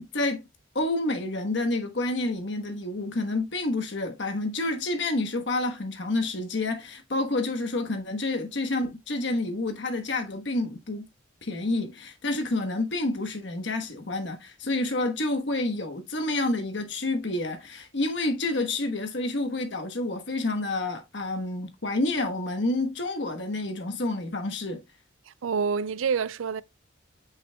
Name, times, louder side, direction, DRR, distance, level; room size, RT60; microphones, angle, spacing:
voice 1, 0.7-11.0 11.4-24.8, left 2 dB, 60° left, 1.2 m, -29 dB
voice 2, 25.3-26.6, right 6 dB, 80° right, 0.4 m, -27 dB
8.2 x 5.6 x 2.3 m
head